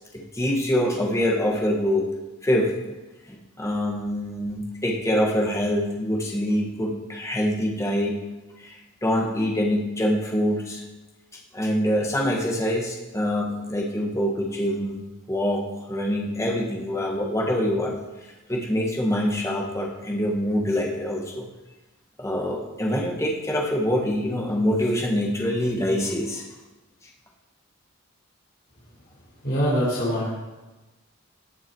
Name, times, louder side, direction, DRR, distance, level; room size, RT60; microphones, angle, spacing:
voice 1, 0.1-2.1 2.4-2.8 3.3-8.2 8.6-10.8 11.5-15.0 15.3-18.0 18.5-21.5 22.2-26.4, equal, 15° left, -1 dB, 1.6 m, -25 dB
voice 2, 29.4-30.3, equal, 50° left, -11 dB, 4.8 m, -23 dB
18.5 x 6.2 x 4.7 m, 1.1 s
head